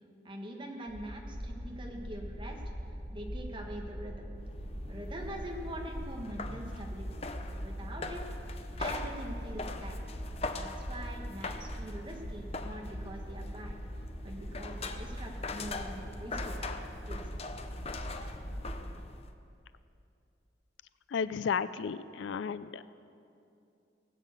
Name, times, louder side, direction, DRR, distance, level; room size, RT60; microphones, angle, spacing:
voice 1, 0.2-2.6 3.1-4.3 4.9-7.1 7.6-8.2 8.8-10.0 10.5-13.7 14.2-16.8 17.1-17.4, right 1 dB, 25° right, 0 dB, 1.5 m, -43 dB
sound 1, 0.9-18.7, equal, 60° right, 4.2 m, -41 dB
sound 2, 1.3-18.7, equal, 40° right, 3.8 m, -54 dB
sound 3, 4.4-19.3, left 3 dB, 35° left, 0.6 m, -43 dB
voice 2, 21.1-22.8, left 6 dB, 80° left, 15 dB, 0.4 m, -33 dB
17.5 x 7.3 x 8.1 m, 2.7 s
head